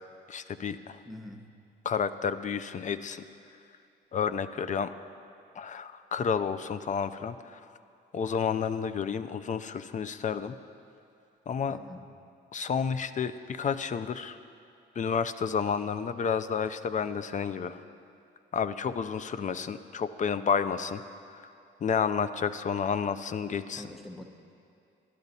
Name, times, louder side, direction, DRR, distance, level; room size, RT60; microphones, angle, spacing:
voice 1, 0.3-1.0 1.8-3.3 4.1-4.9 5.5-7.6 8.1-10.6 11.5-11.8 12.5-14.4 15.0-17.8 18.5-21.0 21.3-21.5 21.8-23.9, left 6 dB, 40° left, 12 dB, 0.5 m, -30 dB
voice 2, 1.0-1.5 11.7-12.0 23.8-24.2, left 1 dB, ahead, 4 dB, 0.9 m, -44 dB
12.0 x 11.5 x 4.1 m, 2.5 s
cardioid pair, 90°, 20 cm